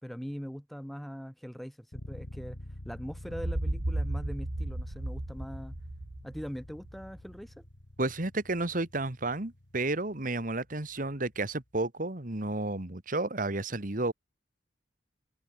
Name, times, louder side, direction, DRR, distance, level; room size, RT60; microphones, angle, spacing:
voice 1, 0.0-2.6 2.9-5.8 6.2-7.6, equal, ahead, 5.2 m, -41 dB
sound 1, 1.9-11.6, left 1 dB, 65° left, 2.3 m, -48 dB
sound 2, 3.3-7.2, right 1 dB, 85° right, 1.7 m, -34 dB
voice 2, 8.0-14.1, right 2 dB, 50° right, 2.0 m, -32 dB
head